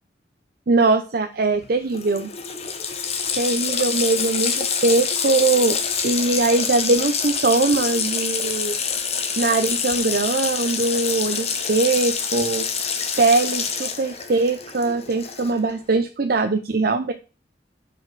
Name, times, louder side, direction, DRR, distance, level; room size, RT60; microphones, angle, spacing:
voice 1, 0.7-2.3 3.4-5.8 6.0-8.8 9.4-12.7 13.2-17.1, right 3 dB, 60° right, 6 dB, 0.6 m, -21 dB
Water tap faucet, 1.6-1.7 1.9-15.7, left 6 dB, 35° left, 1.0 m, -26 dB
5.8 x 5.2 x 4.6 m, 0.32 s
head